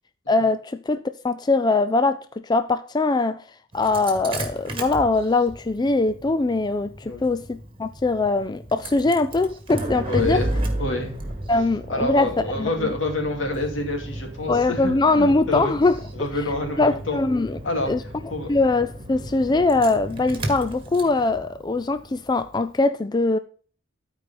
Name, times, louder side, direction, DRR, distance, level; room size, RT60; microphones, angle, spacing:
voice 1, 0.3-1.0 1.2-3.4 3.7-10.4 11.5-12.3 12.6-12.9 14.5-16.0 16.8-17.6 17.9-18.0 18.5-23.4, left 3 dB, 20° left, 0.4 m, -22 dB
Engine starting, 3.7-22.7, right 1 dB, 25° right, 1.8 m, -34 dB
voice 2, 10.1-10.5 10.8-11.1 11.9-15.7 16.1-17.2 17.6-17.9 18.3-18.5, left 2 dB, 75° left, 2.5 m, -27 dB
13.0 x 4.8 x 4.2 m
head